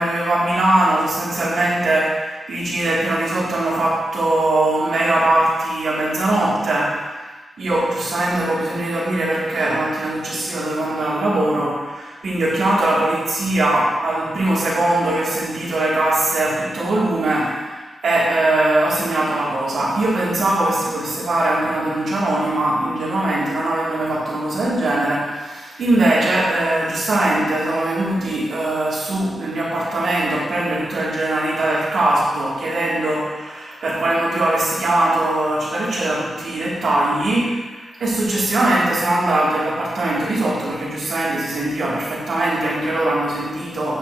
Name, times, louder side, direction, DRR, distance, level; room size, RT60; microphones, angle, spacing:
voice 1, 0.0-7.3 7.6-44.0, right 1 dB, 80° right, -6 dB, 2.0 m, -21 dB
8.6 x 5.6 x 2.6 m, 1.3 s
wide cardioid pair, 125°, 0 cm